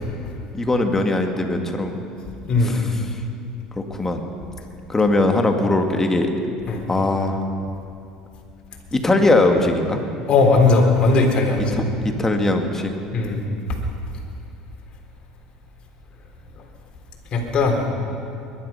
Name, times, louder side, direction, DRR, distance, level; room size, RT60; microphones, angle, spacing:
voice 1, 0.5-2.0 2.6-3.2 3.8-4.2 4.9-6.3 6.9-7.4 8.9-10.0 11.7-11.9 12.2-12.9, left 2 dB, 15° left, 4 dB, 2.0 m, -20 dB
voice 2, 10.3-11.7 13.1-13.4 17.3-17.8, left 3 dB, 45° left, 1 dB, 3.6 m, -17 dB
21.5 x 11.5 x 5.7 m, 2.6 s
hypercardioid pair, 80°, 2 cm